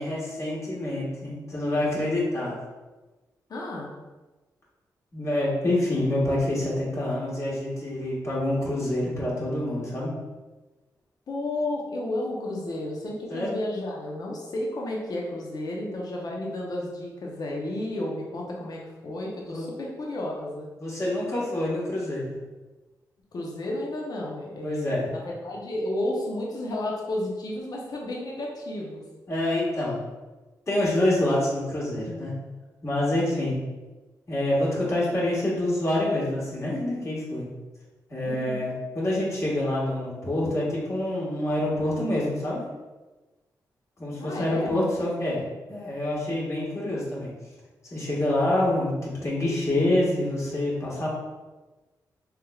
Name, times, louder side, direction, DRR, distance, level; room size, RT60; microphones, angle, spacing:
voice 1, 0.0-2.6 5.1-10.1 13.3-13.6 19.4-19.7 20.8-22.3 24.6-25.1 29.3-30.0 30.7-32.3 32.8-33.5 34.3-37.5 38.1-42.6 44.0-45.4 45.7-47.3 47.9-51.1, left 1 dB, 45° left, -6 dB, 1.4 m, -26 dB
voice 2, 3.5-3.9 11.3-20.7 23.3-29.0 38.2-38.6 44.2-44.7, left 1 dB, 65° left, -2 dB, 0.7 m, -32 dB
3.5 x 3.1 x 2.3 m, 1.2 s
cardioid pair, 65°, 7 cm